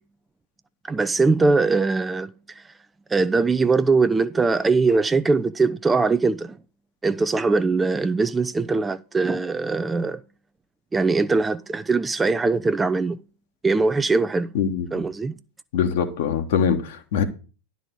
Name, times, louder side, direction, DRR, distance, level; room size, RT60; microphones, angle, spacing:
voice 1, 0.9-2.6 3.1-6.6 7.0-10.2 10.9-13.2 13.6-14.5 14.9-15.4, right 3 dB, 10° right, 0.4 m, -21 dB
voice 2, 14.5-14.9 15.7-17.2, left 7 dB, 55° left, 1.3 m, -23 dB
11.0 x 4.1 x 7.8 m
figure-of-eight pair, 90°, 0 cm